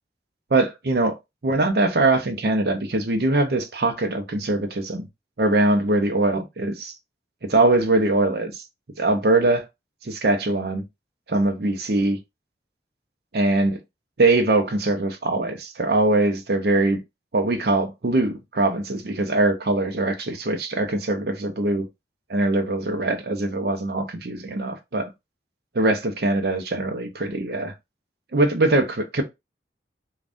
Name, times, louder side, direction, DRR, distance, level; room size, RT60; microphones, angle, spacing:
voice 1, 0.5-1.1 1.4-5.0 5.4-6.9 7.5-8.6 9.0-9.6 10.0-10.8 11.3-12.2 13.3-13.8 14.2-17.0 17.3-21.9 22.3-25.1 25.7-27.7 28.3-29.2, right 2 dB, 60° right, 0.6 m, -22 dB
2.5 x 2.3 x 3.4 m
head